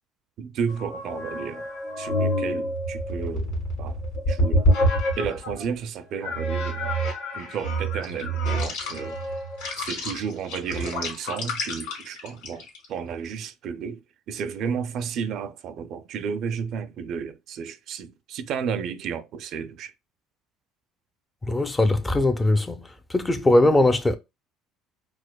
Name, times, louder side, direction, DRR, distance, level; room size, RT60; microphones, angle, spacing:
voice 1, 0.4-1.7 2.0-4.0 4.3-4.9 5.2-7.0 7.3-9.2 9.8-14.0 14.3-19.9, right 6 dB, 60° right, 0.4 m, -32 dB
sound 1, 0.7-5.6 6.2-12.8, equal, 80° left, 1.7 m, -27 dB
voice 2, 21.5-24.2, left 2 dB, 15° left, 0.5 m, -20 dB
4.7 x 2.1 x 2.2 m
supercardioid pair, 95°, 0 cm